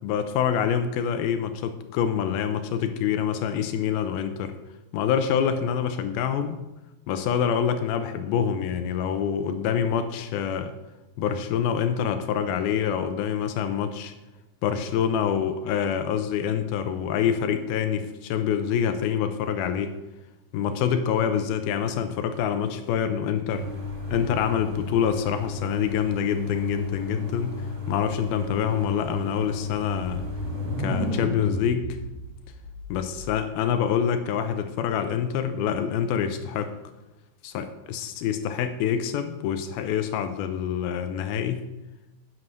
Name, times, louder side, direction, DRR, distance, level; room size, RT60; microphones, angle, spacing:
voice 1, 0.0-4.6 4.9-6.6 7.1-10.7 11.2-14.1 14.6-19.9 20.5-23.7 24.1-30.2 30.8-31.8 32.9-36.7 37.4-41.6, left 8 dB, 85° left, 8 dB, 2.6 m, -26 dB
sound 1, 23.5-31.3, left 3 dB, 35° right, 3.1 m, -34 dB
sound 2, 29.9-33.6, equal, 85° right, 3.7 m, -34 dB
9.7 x 9.2 x 6.4 m, 1.0 s
omnidirectional pair, 4.4 m